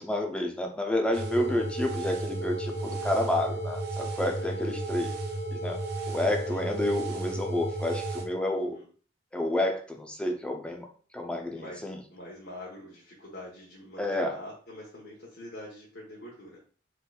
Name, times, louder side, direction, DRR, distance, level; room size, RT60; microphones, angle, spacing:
voice 1, 0.0-5.1 5.5-5.8 6.1-8.8 9.3-10.9 11.1-12.0 14.0-14.4, left 1 dB, 5° left, 2 dB, 0.6 m, -29 dB
sound 1, 1.1-8.2, right 2 dB, 60° right, 1.0 m, -33 dB
voice 2, 4.2-4.6 6.5-6.7 8.5-8.9 11.5-16.6, left 1 dB, 65° left, -4 dB, 1.1 m, -45 dB
4.4 x 3.9 x 2.4 m, 0.41 s
head